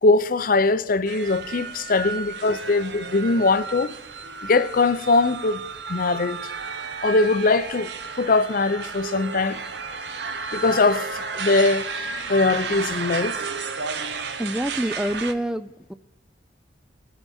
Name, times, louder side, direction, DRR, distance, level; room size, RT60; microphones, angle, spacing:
voice 1, 0.0-3.9 4.4-5.6 5.9-6.4 7.0-7.9 8.2-9.6 10.5-11.9 12.3-13.4, left 3 dB, 50° left, 0.6 m, -21 dB
sound 1, 1.1-15.3, right 5 dB, 70° right, 0.9 m, -33 dB
Trumpet, 5.8-12.4, right 2 dB, 50° right, 1.3 m, -41 dB
voice 2, 14.4-15.9, right 1 dB, 5° right, 0.3 m, -27 dB
20.5 x 8.0 x 4.3 m
head